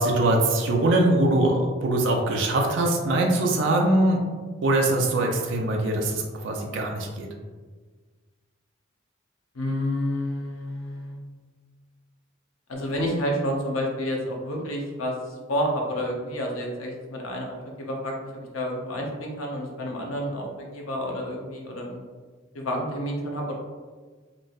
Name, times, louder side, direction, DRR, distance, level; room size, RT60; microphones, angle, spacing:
voice 1, 0.0-4.2 4.6-7.3, right 1 dB, 65° right, 1 dB, 0.4 m, -22 dB
voice 2, 9.5-11.2 12.7-22.0 22.5-23.5, equal, 85° left, 0 dB, 0.6 m, -29 dB
3.0 x 2.6 x 2.3 m, 1.4 s
head